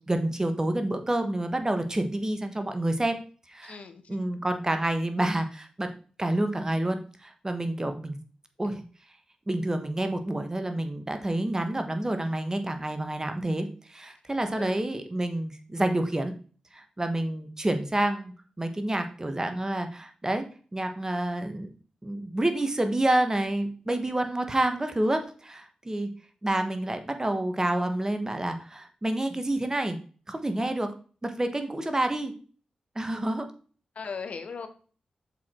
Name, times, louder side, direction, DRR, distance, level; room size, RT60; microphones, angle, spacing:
voice 1, 0.1-3.2 3.5-3.8 4.1-5.9 6.2-8.2 8.6-8.8 9.5-16.3 16.7-20.4 20.7-21.7 22.0-26.1 26.4-30.0 30.3-30.9 31.2-32.3 32.9-33.5, right 1 dB, 25° right, 7 dB, 1.4 m, -28 dB
voice 2, 3.6-4.2 8.6-8.8 14.5-14.7 33.9-34.7, left 5 dB, 65° left, 8 dB, 1.0 m, -38 dB
6.9 x 4.9 x 4.5 m, 0.40 s
cardioid pair, 50°, 2 cm